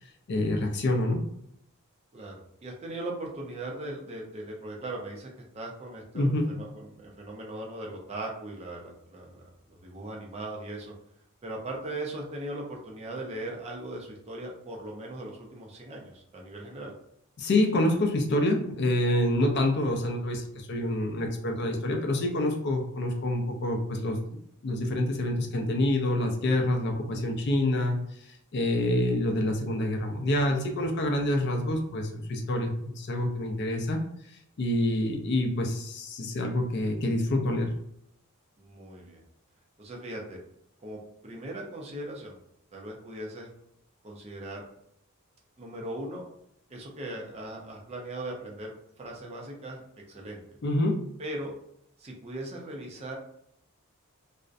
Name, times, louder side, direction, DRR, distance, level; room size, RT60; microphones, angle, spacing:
voice 1, 0.3-1.2 6.1-6.6 17.4-24.4 24.6-34.0 34.3-37.7 50.6-51.1, left 1 dB, 50° left, 2 dB, 0.4 m, -27 dB
voice 2, 2.1-10.9 11.4-16.9 38.6-39.2 39.8-40.4 40.8-42.4 42.7-43.5 44.0-44.6 45.6-46.2 46.7-49.8 50.1-50.6 51.2-51.5 52.0-53.2, right 1 dB, 30° right, 0 dB, 0.4 m, -39 dB
2.5 x 2.0 x 2.4 m, 0.73 s
head